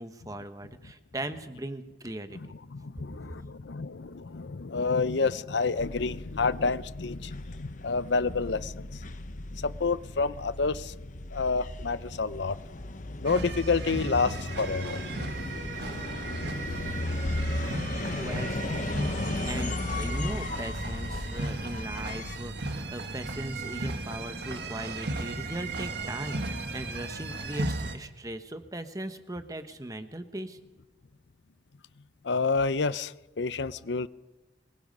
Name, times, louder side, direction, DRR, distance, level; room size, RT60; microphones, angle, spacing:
voice 1, 0.0-2.4 18.2-18.9 19.4-30.6, right 1 dB, 20° right, 9 dB, 1.2 m, -39 dB
voice 2, 2.3-9.0 9.3-10.9 11.3-12.6 13.2-15.0 18.0-18.6 32.2-34.1, left 4 dB, 70° left, 15 dB, 0.7 m, -29 dB
sound 1, 5.8-22.4, left 2 dB, 45° left, 1.0 m, -36 dB
sound 2, 13.2-28.0, right 2 dB, 65° right, 1.8 m, -36 dB
25.0 x 22.5 x 5.4 m, 1.1 s
head